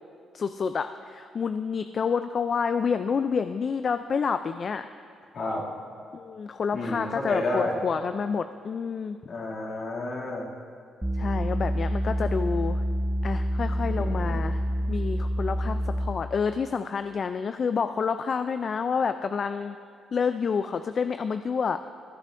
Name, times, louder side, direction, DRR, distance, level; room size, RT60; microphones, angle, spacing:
voice 1, 0.3-4.9 6.1-9.2 11.1-12.8 13.2-14.6 14.9-19.8 20.1-21.8, left 6 dB, 45° left, 9 dB, 0.3 m, -28 dB
voice 2, 6.7-7.8 9.3-10.5 13.9-14.4, left 2 dB, 65° left, -6 dB, 2.4 m, -31 dB
sound 1, 11.0-16.3, equal, 10° right, 0.9 m, -27 dB
17.0 x 10.5 x 2.6 m, 2.3 s
cardioid pair, 90°, 0 cm